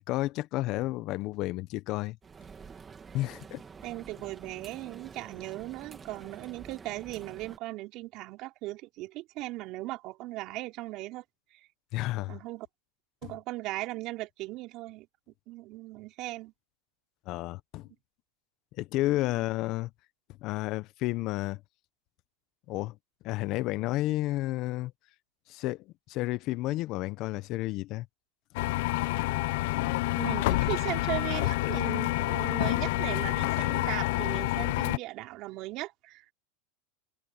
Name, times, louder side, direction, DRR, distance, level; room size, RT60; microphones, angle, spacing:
voice 1, 0.0-2.2 3.1-3.6 11.9-12.4 17.3-17.9 18.8-19.9 20.4-21.6 22.7-22.9 23.2-24.9 25.5-28.1, left 17 dB, 50° left, 1.1 m, -31 dB
sound 1, 2.2-7.6, right 5 dB, 20° right, 3.0 m, -48 dB
voice 2, 3.8-11.2 11.5-11.6 12.3-12.7 13.2-15.1 15.5-16.5 19.4-19.5 30.1-36.3, right 18 dB, 50° right, 3.6 m, -38 dB
sound 2, 28.5-35.0, left 19 dB, 70° left, 0.8 m, -28 dB
supercardioid pair, 115°, 0 cm